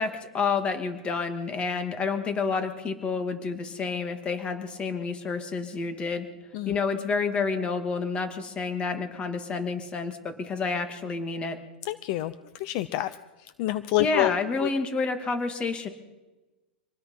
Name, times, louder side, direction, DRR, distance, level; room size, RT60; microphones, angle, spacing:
voice 1, 0.0-6.3 6.7-11.6 14.0-15.9, left 4 dB, 20° left, 7 dB, 2.5 m, -29 dB
voice 2, 11.8-12.3 12.6-13.1 13.6-14.3 14.6-14.7, left 16 dB, 45° left, 14 dB, 0.9 m, -27 dB
26.0 x 19.5 x 5.7 m, 1.1 s
supercardioid pair, 145°, 6 cm